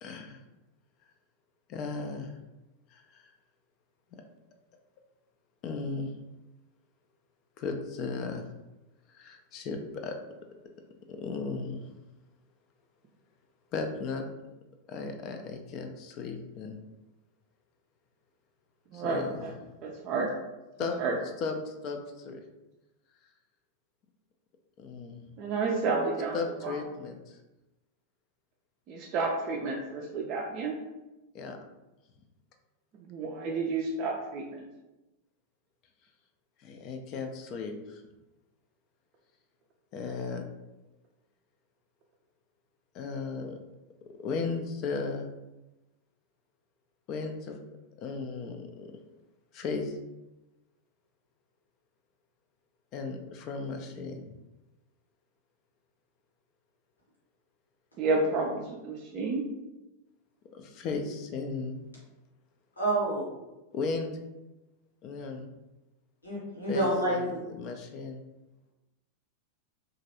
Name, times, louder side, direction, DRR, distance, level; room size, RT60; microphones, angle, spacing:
voice 1, 0.0-0.4 1.7-2.4 2.9-3.3 5.6-6.1 7.6-8.4 9.1-10.2 11.1-11.9 13.7-14.2 14.9-16.8 18.9-19.4 20.8-21.0 21.4-22.4 24.8-25.2 26.3-27.4 31.3-31.6 36.6-38.0 39.9-40.5 42.9-43.6 44.2-45.3 47.1-47.6 48.0-48.9 49.5-50.0 52.9-54.3 60.5-61.8 63.7-64.1 65.0-65.5 66.7-68.2, left 4 dB, 40° left, 4 dB, 0.3 m, -35 dB
voice 2, 18.9-19.5 19.8-20.3 21.0-21.2 25.4-26.8 28.9-30.8 33.0-34.6 58.0-59.4, right 3 dB, 35° right, -2 dB, 0.4 m, -31 dB
voice 3, 62.8-63.2 66.2-67.4, right 1 dB, 80° left, -6 dB, 1.1 m, -28 dB
2.9 x 2.4 x 2.7 m, 1.0 s
figure-of-eight pair, 90°, 0 cm